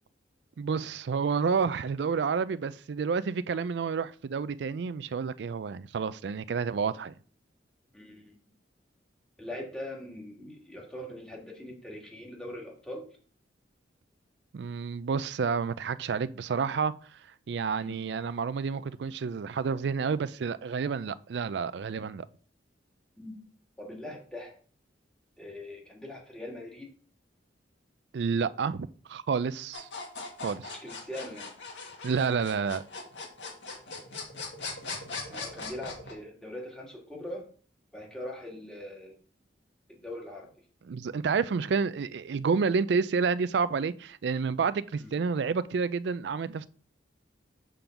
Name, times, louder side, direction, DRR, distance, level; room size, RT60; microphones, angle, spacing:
voice 1, 0.6-7.1 14.5-16.9 17.5-22.2 28.1-29.9 30.4-30.7 32.0-32.8 40.9-46.7, right 5 dB, 65° right, 0.4 m, -29 dB
voice 2, 7.9-8.3 9.4-13.0 17.7-18.0 23.2-23.4 23.8-24.6 25.4-26.9 30.7-31.5 35.3-37.4 37.9-39.2 39.9-40.5 45.0-45.2, left 1 dB, 5° left, 1.7 m, -41 dB
sound 1, 29.7-36.1, left 4 dB, 75° left, 1.8 m, -40 dB
6.8 x 3.8 x 5.8 m
head